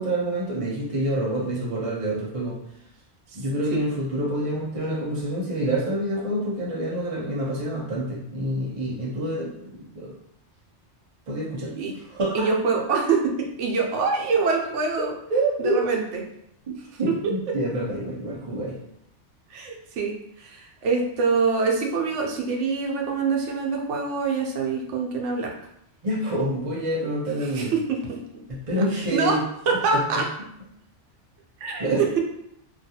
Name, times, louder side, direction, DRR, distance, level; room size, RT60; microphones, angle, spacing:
voice 1, 0.0-2.6 3.3-10.1 11.3-11.7 12.1-12.5 15.3-15.8 16.7-18.8 26.0-27.7 28.7-29.4 30.1-30.2 31.8-32.0, right 1 dB, 45° right, -4 dB, 0.4 m, -27 dB
voice 2, 12.3-15.1 15.6-16.2 19.5-25.5 27.4-28.0 29.1-29.4 29.7-30.2 31.6-31.9, right 4 dB, 85° right, 1 dB, 0.9 m, -25 dB
2.3 x 2.3 x 2.7 m, 0.74 s
omnidirectional pair, 1.2 m